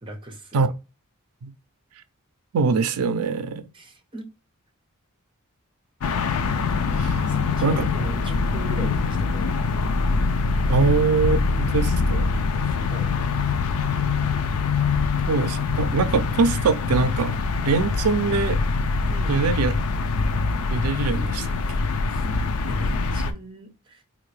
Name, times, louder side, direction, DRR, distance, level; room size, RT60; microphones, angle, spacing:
voice 1, 0.0-0.7 3.7-4.3 7.2-9.5 12.6-13.1 19.1-19.8 22.1-22.3 22.7-24.0, right 1 dB, 25° right, 0.8 m, -38 dB
voice 2, 2.5-3.6 6.9-7.2 7.6-7.8 10.7-12.3 15.3-17.4 17.6-18.6 19.3-19.7 20.7-21.5, right 4 dB, 90° right, 0.4 m, -23 dB
sound 1, 6.0-23.3, left 4 dB, 85° left, 0.4 m, -24 dB
3.6 x 2.5 x 3.2 m
head